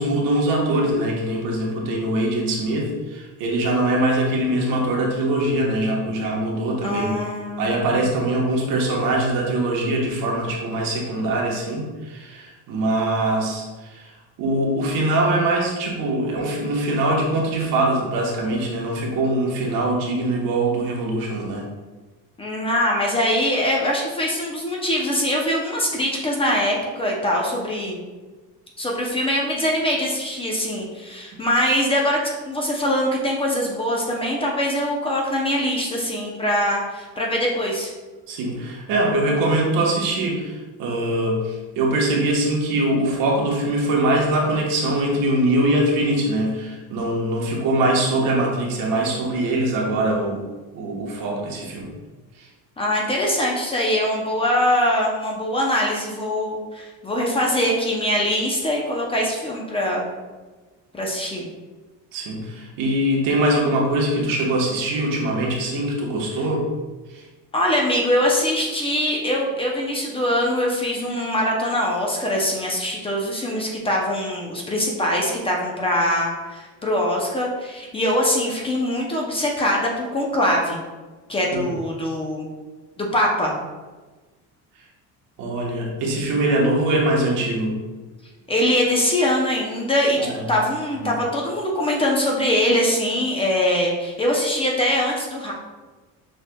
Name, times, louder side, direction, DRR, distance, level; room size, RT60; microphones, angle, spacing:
voice 1, 0.0-7.2 7.6-14.1 14.4-21.7 38.3-50.4 50.7-51.9 52.4-52.5 62.1-66.6 67.1-67.2 81.5-81.6 85.4-87.8 90.2-90.4 91.0-91.1, right 1 dB, 75° right, -1 dB, 1.1 m, -22 dB
voice 2, 6.8-8.2 22.4-28.0 28.8-32.2 32.4-37.9 52.8-60.2 60.9-61.5 67.5-80.8 81.3-82.5 83.0-83.5 88.5-90.2 90.5-95.5, left 1 dB, 15° left, -2 dB, 0.5 m, -23 dB
6.2 x 3.2 x 2.2 m, 1.3 s
cardioid pair, 155°, 34 cm